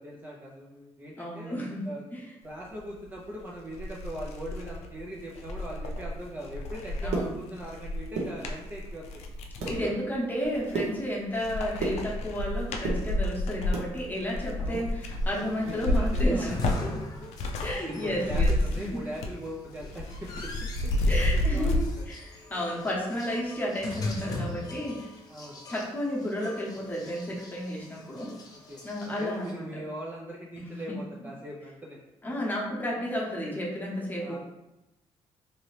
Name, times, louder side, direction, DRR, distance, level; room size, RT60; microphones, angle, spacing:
voice 1, 0.0-1.5 1.8-2.0 2.4-9.2 9.6-10.0 14.6-14.8 15.3-17.0 17.9-20.5 20.8-21.7 22.0-22.1 25.3-25.6 28.5-32.0 34.2-34.4, right 1 dB, 15° right, -4 dB, 0.4 m, -41 dB
voice 2, 1.2-1.8 2.1-2.2 7.0-7.3 9.7-16.9 17.6-19.0 21.1-25.1 25.7-28.3 28.8-29.7 30.6-30.9 32.2-34.4, equal, 15° left, -4 dB, 0.9 m, -32 dB
sound 1, 3.2-3.3 3.7-9.8 10.4-11.0 11.3-17.8 18.0-19.4 19.7-21.8, left 1 dB, 80° left, 0.5 m, -30 dB
sound 2, 6.8-7.8 8.0-8.9 9.3-9.8 10.2-12.5 12.7-13.9 14.3-15.8 16.1-16.2 16.6-16.8 17.2-17.4, right 3 dB, 80° right, 0.8 m, -34 dB
sound 3, 15.2-29.5, left 2 dB, 35° left, 0.6 m, -42 dB
2.8 x 2.7 x 3.2 m, 0.96 s
cardioid pair, 115°, 11 cm